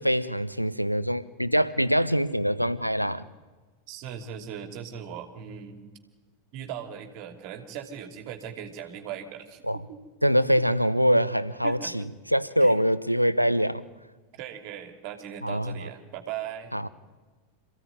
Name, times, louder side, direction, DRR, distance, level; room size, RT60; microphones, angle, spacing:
voice 1, 0.0-3.3 9.6-9.8 10.2-13.8 15.4-15.9 16.7-16.9, equal, 90° right, 16 dB, 1.0 m, -24 dB
voice 2, 3.9-5.8 6.5-9.6 9.9-10.0 11.6-11.9 12.6-12.8 14.4-16.7, right 9 dB, 45° right, 5 dB, 2.9 m, -38 dB
27.5 x 16.0 x 9.6 m, 1.3 s
figure-of-eight pair, 90°, 0 cm